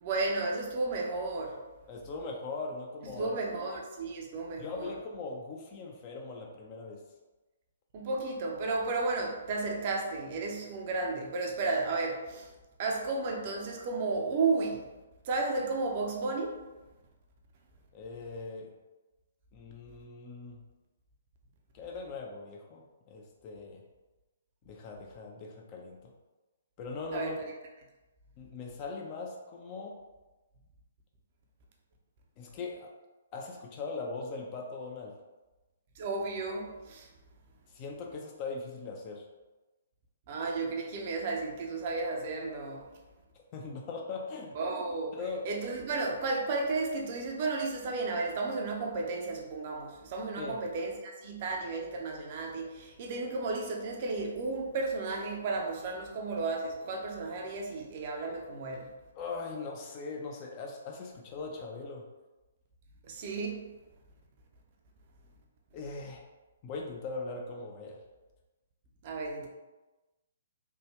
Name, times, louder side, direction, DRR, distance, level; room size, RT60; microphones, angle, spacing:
voice 1, 0.0-1.6 3.2-4.9 7.9-12.5 12.8-14.8 15.2-16.6 27.1-27.3 36.0-37.1 40.3-42.9 44.6-45.1 45.4-58.9 63.1-63.6 69.0-69.5, right 3 dB, 40° right, 0 dB, 0.6 m, -33 dB
voice 2, 1.9-3.4 4.6-7.0 17.9-18.7 19.5-20.6 21.7-23.8 24.7-26.1 26.8-27.4 28.4-30.0 32.4-32.9 33.3-35.1 37.7-39.3 43.5-44.6 45.1-45.4 50.4-50.6 59.2-62.0 65.7-66.2 66.6-68.0, left 3 dB, 30° left, 0 dB, 0.5 m, -40 dB
3.4 x 2.2 x 3.1 m, 1.1 s
figure-of-eight pair, 125°, 0 cm